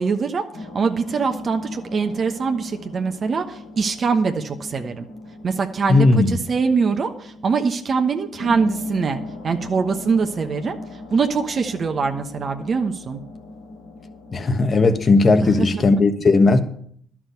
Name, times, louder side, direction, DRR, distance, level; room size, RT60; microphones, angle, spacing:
voice 1, 0.0-5.0 5.4-10.8 11.1-13.2 15.4-15.8, right 5 dB, 45° right, 1.0 m, -23 dB
sound 1, 0.5-15.8, left 2 dB, 90° left, 3.0 m, -38 dB
voice 2, 5.9-6.4 14.3-16.6, left 3 dB, 40° left, 1.3 m, -16 dB
11.5 x 6.1 x 8.2 m
supercardioid pair, 65°, 0 cm